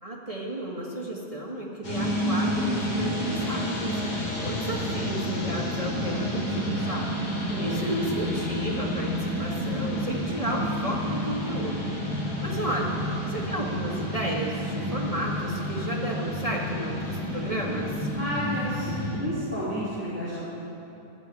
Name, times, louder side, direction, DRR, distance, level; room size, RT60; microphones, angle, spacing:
voice 1, 0.0-12.9 13.3-18.1, right 1 dB, 30° right, -3 dB, 0.6 m, -33 dB
sound 1, 1.8-19.2, equal, 40° left, 4.0 m, -30 dB
voice 2, 7.5-7.8 18.2-20.4, equal, 5° right, -13 dB, 3.7 m, -31 dB
14.0 x 8.3 x 9.5 m, 2.9 s
omnidirectional pair, 3.4 m